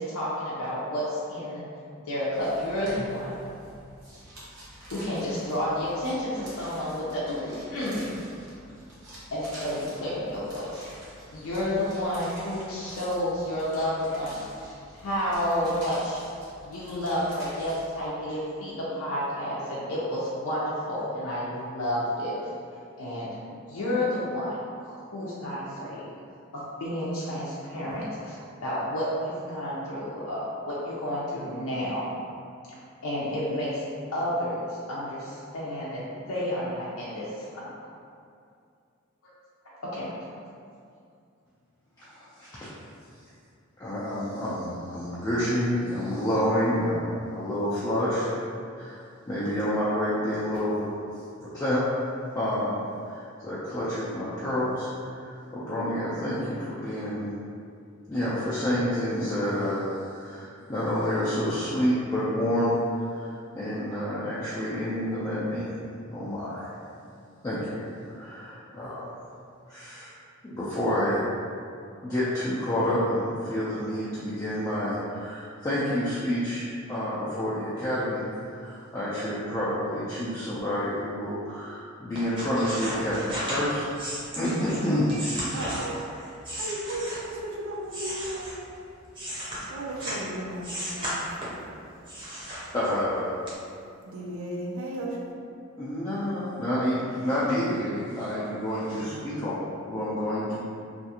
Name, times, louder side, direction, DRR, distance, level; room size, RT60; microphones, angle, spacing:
voice 1, 0.0-1.6 2.1-3.3 4.9-8.2 9.3-10.9 11.3-16.2 16.6-22.3 23.0-23.3 23.7-26.1 26.5-32.1 33.0-33.8 34.1-37.7 39.9-40.2, left 1 dB, 90° left, -8 dB, 0.5 m, -30 dB
sound 1, 2.3-18.1, equal, 60° right, 0.9 m, -47 dB
voice 2, 42.0-42.7 43.8-48.2 48.7-50.9 51.4-51.8 52.4-57.3 58.1-62.7 63.1-65.7 66.1-66.7 67.4-69.1 69.7-70.1 70.4-71.2 72.0-78.2 78.5-83.8 84.4-85.4 92.4-92.5 92.7-93.4 95.8-99.6 99.9-100.6, equal, 15° left, -11 dB, 0.3 m, -29 dB
sound 2, 82.1-87.4 87.8-90.3 90.6-91.6 92.0-93.1 93.5-93.6, equal, 25° right, 0.7 m, -35 dB
voice 3, 85.5-86.0 86.5-88.6 89.7-91.7 94.0-95.2, right 1 dB, 80° right, -2 dB, 0.4 m, -35 dB
2.5 x 2.3 x 2.8 m, 2.4 s
head